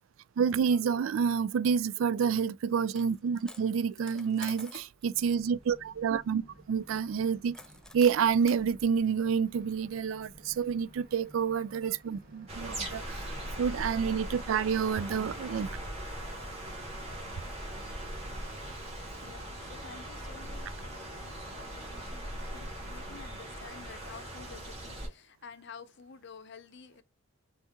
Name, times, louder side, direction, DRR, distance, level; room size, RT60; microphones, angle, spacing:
voice 1, 0.4-7.6 7.9-15.7, right 6 dB, 75° right, 0.3 m, -29 dB
Coin (dropping), 2.8-3.1 3.4-4.9 7.5-8.6, left 1 dB, 5° left, 0.4 m, -47 dB
sound 1, 5.1-13.6, right 1 dB, 45° right, 1.5 m, -55 dB
sound 2, 12.5-25.1, right 1 dB, 30° right, 2.2 m, -40 dB
voice 2, 19.2-27.0, left 5 dB, 60° left, 0.6 m, -50 dB
5.6 x 2.8 x 2.9 m
head